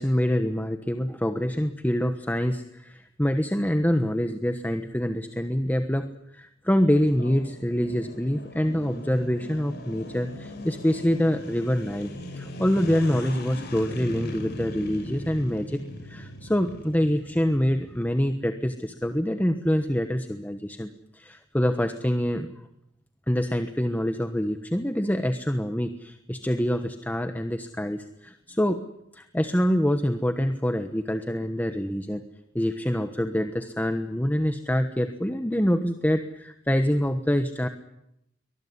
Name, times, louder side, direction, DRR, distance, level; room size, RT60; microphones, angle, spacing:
voice 1, 0.0-6.1 6.3-20.9 21.1-22.5 23.3-28.8 29.1-32.2 32.5-37.7, equal, 10° left, 8 dB, 1.2 m, -26 dB
sound 1, 7.0-18.3, equal, 60° left, 6.4 m, -39 dB
23.5 x 20.0 x 9.8 m, 0.80 s
head